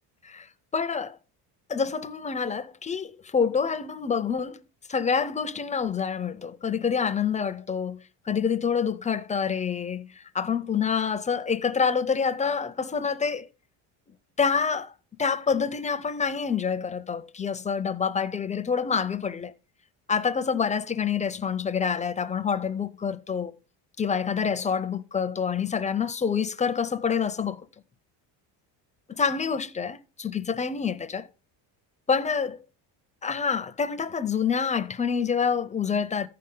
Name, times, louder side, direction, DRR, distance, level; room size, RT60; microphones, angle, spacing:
voice 1, 0.2-1.2 1.7-4.6 4.9-13.5 14.4-19.5 20.1-23.5 24.0-27.7 29.1-31.3 32.1-32.6 33.2-36.3, left 6 dB, 15° left, 0.4 m, -27 dB
14.5 x 5.7 x 3.8 m
cardioid pair, 125°, 43 cm